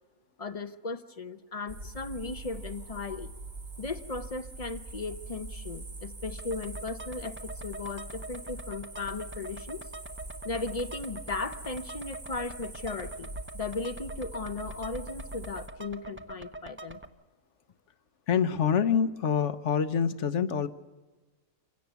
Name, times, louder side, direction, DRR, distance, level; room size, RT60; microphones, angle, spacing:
voice 1, 0.4-3.3 3.8-9.8 10.4-13.3 13.5-17.0, left 3 dB, 35° left, 11 dB, 0.6 m, -37 dB
sound 1, 1.7-15.7, right 2 dB, 50° right, 3.9 m, -43 dB
sound 2, 6.4-17.1, right 2 dB, 10° right, 0.7 m, -45 dB
voice 2, 18.3-20.7, left 7 dB, 60° left, 12 dB, 1.2 m, -26 dB
27.0 x 17.0 x 7.0 m, 1.3 s
omnidirectional pair, 1.5 m